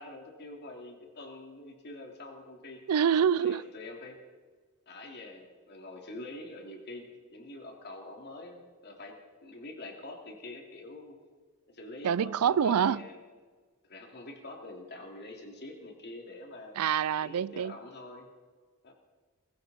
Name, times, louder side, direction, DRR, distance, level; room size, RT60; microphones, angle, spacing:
voice 1, 0.0-2.8 3.4-4.2 4.9-11.2 11.7-13.2 13.9-16.7 17.1-18.3 18.8-18.9, left 2 dB, 50° left, 2.8 m, -45 dB
voice 2, 2.9-3.6 12.0-13.0 16.7-17.7, right 8 dB, 80° right, 0.4 m, -26 dB
20.0 x 15.0 x 4.3 m
head